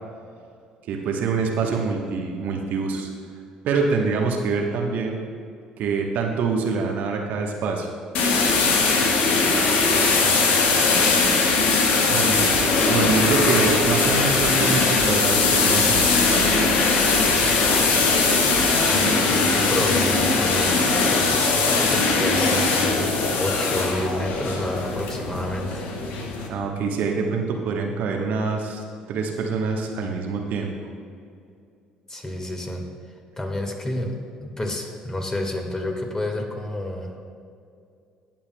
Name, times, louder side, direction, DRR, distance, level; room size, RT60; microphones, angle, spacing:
voice 1, 0.9-3.1 3.6-5.2 5.8-7.9 12.1-12.4 12.9-16.6 26.1-28.8 29.1-30.7, right 4 dB, 60° right, 1 dB, 1.0 m, -25 dB
sound 1, 8.1-26.5, left 3 dB, 60° left, 1.2 m, -20 dB
voice 2, 9.8-10.9 12.1-12.6 18.8-20.8 21.1-25.8 32.1-32.8 33.4-37.3, left 1 dB, 20° left, 2 dB, 1.7 m, -30 dB
sound 2, 12.3-19.4, right 3 dB, 80° right, 1.4 m, -37 dB
18.0 x 7.3 x 2.2 m, 2.4 s
hypercardioid pair, 55°, 3 cm